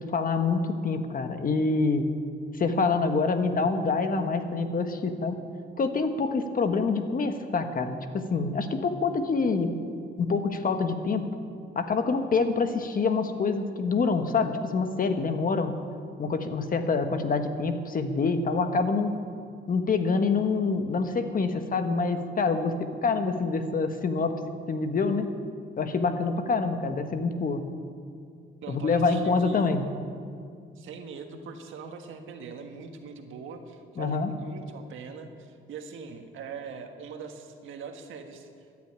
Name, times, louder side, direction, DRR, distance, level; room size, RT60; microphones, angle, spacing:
voice 1, 0.0-2.1 2.5-5.4 5.8-9.7 10.2-11.3 11.7-15.7 16.2-19.1 19.7-24.3 24.7-25.3 25.8-27.6 28.7-29.8 34.0-34.3, left 4 dB, 45° left, 8 dB, 1.4 m, -26 dB
voice 2, 28.6-29.7 30.8-38.5, right 5 dB, 80° right, 5 dB, 1.6 m, -41 dB
14.0 x 9.8 x 8.8 m, 2.3 s
cardioid pair, 90°, 20 cm